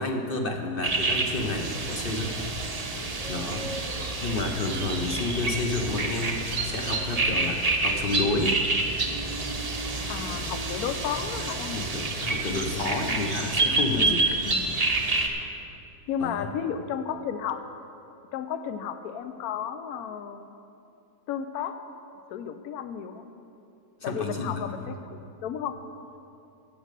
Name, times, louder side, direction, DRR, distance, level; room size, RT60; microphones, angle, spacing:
voice 1, 0.0-2.4 3.3-8.6 10.2-10.6 11.7-14.4 16.2-16.4 24.0-24.7, left 2 dB, 50° left, 3 dB, 0.7 m, -30 dB
sound 1, 0.8-15.3, right 3 dB, 35° right, 0.7 m, -28 dB
voice 2, 3.9-4.4 10.1-11.9 13.1-13.4 13.9-14.2 14.4-14.8 15.4-15.5 16.1-17.6 18.3-20.5 21.3-21.8 22.3-23.3 24.0-25.8, left 8 dB, 70° left, 9 dB, 1.0 m, -33 dB
15.5 x 6.4 x 6.6 m, 2.6 s
omnidirectional pair, 1.8 m